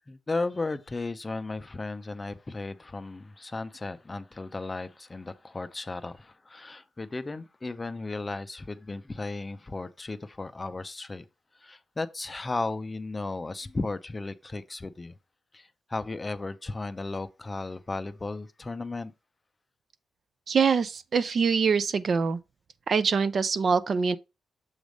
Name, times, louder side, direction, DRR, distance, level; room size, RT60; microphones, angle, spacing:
voice 1, 0.1-11.2 11.6-15.1 15.5-19.1, left 3 dB, 20° left, 0.5 m, -35 dB
voice 2, 20.5-22.4 22.9-24.2, right 5 dB, 45° right, 0.4 m, -24 dB
7.2 x 3.3 x 5.1 m
wide cardioid pair, 145°, 0 cm